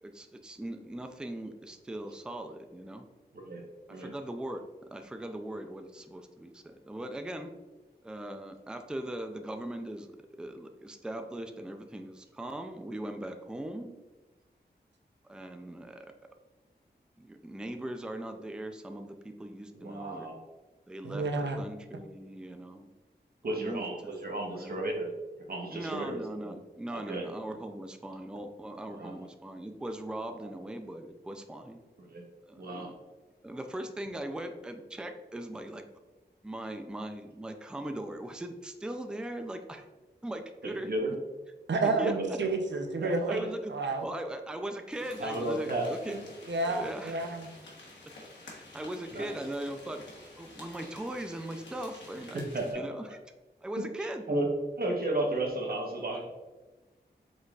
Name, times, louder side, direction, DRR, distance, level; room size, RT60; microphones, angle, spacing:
voice 1, 0.0-3.0 4.0-7.5 8.0-10.1 10.4-13.9 15.2-16.1 17.2-20.3 20.9-21.2 21.6-22.9 23.5-24.8 25.7-31.8 32.5-32.9 33.4-35.8 36.4-39.9 40.2-40.9 41.8-42.2 43.3-46.2 46.6-47.2 48.4-50.0 50.4-52.4 52.7-53.2 53.6-54.2, right 1 dB, 5° right, 6 dB, 0.4 m, -40 dB
voice 2, 19.7-20.3 23.4-25.1 25.5-26.6 26.9-27.3 28.9-29.3 30.4-30.5 32.0-32.2 32.6-32.9 40.7-41.1 42.0-42.4 43.0-43.5 45.2-46.2 49.1-49.3 52.3-52.8 54.0-54.5 54.8-56.3, right 1 dB, 60° right, 0 dB, 1.0 m, -34 dB
voice 3, 21.0-21.6 41.7-42.1 42.4-43.4 43.7-44.1 46.5-47.5, right 3 dB, 85° right, 4 dB, 0.6 m, -30 dB
sound 1, 44.9-52.7, left 2 dB, 85° left, 1.1 m, -50 dB
5.2 x 3.8 x 2.4 m, 1.2 s
wide cardioid pair, 90°, 18 cm